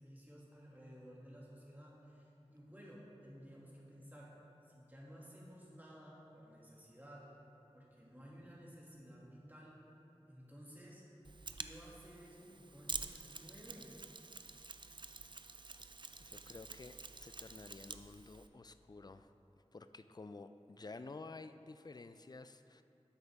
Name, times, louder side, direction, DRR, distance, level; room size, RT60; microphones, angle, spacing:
voice 1, 0.0-4.4 4.6-7.3 7.7-9.8 10.3-11.0 11.5-13.9, equal, 15° right, -6 dB, 2.2 m, -55 dB
Mechanisms, 11.2-18.5, right 3 dB, 45° right, 0.4 m, -48 dB
voice 2, 16.2-19.3 19.7-22.8, left 3 dB, 35° left, 11 dB, 0.4 m, -52 dB
12.5 x 8.1 x 3.5 m, 2.8 s
wide cardioid pair, 50°, 11 cm